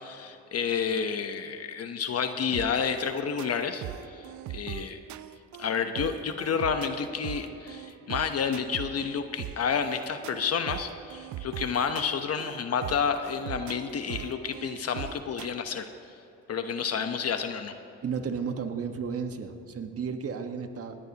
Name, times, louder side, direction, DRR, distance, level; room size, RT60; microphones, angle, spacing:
voice 1, 0.0-5.0 5.6-15.9 16.5-17.7, left 6 dB, 55° left, 7 dB, 1.0 m, -30 dB
sound 1, 2.5-15.5, right 12 dB, 75° right, 0.5 m, -41 dB
voice 2, 18.0-21.0, right 6 dB, 50° right, 6 dB, 1.4 m, -33 dB
20.5 x 17.0 x 2.9 m, 2.8 s
cardioid pair, 90°, 30 cm